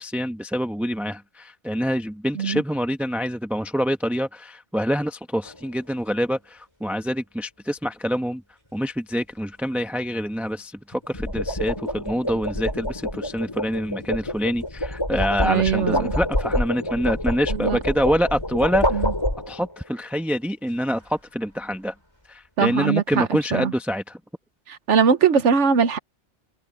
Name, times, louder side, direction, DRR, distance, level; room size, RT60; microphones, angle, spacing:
voice 1, 0.0-8.4 8.7-19.0 19.5-21.9 22.3-24.2, equal, ahead, 1.0 m, -26 dB
sound 1, 5.5-5.8 10.9-19.8, left 1 dB, 20° left, 4.2 m, -27 dB
voice 2, 15.4-16.1 17.5-17.8 18.9-19.1 22.6-23.3 23.5-23.7 24.7-26.0, right 6 dB, 75° right, 1.3 m, -21 dB
omnidirectional pair, 1.2 m